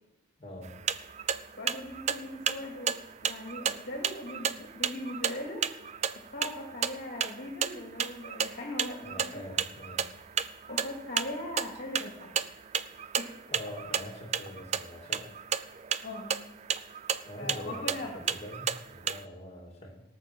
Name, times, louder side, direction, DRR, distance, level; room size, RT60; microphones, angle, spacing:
voice 1, 0.4-0.8 9.0-10.1 13.5-15.3 17.3-20.0, left 1 dB, 30° left, 0 dB, 2.7 m, -44 dB
sound 1, 0.6-19.2, right 8 dB, 35° right, 0.4 m, -33 dB
voice 2, 1.6-5.6 6.0-9.4 10.7-12.3 13.2-13.3 16.0-16.5 17.4-18.2, left 1 dB, 50° left, 0 dB, 2.3 m, -40 dB
18.0 x 7.1 x 6.1 m, 0.95 s
head